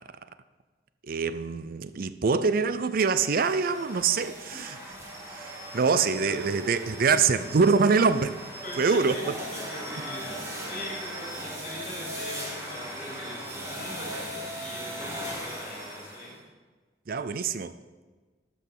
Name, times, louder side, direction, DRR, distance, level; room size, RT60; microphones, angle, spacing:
voice 1, 1.0-4.5 5.3-8.4 8.8-9.2 17.1-17.7, right 5 dB, 55° right, 0.5 m, -24 dB
sound 1, 3.2-16.4, equal, 15° right, 2.3 m, -38 dB
voice 2, 6.2-6.6 8.6-16.3, left 1 dB, 45° left, 4.6 m, -41 dB
sound 2, 9.5-14.2 14.7-14.8, right 1 dB, 75° right, 2.1 m, -48 dB
12.0 x 6.2 x 7.3 m
head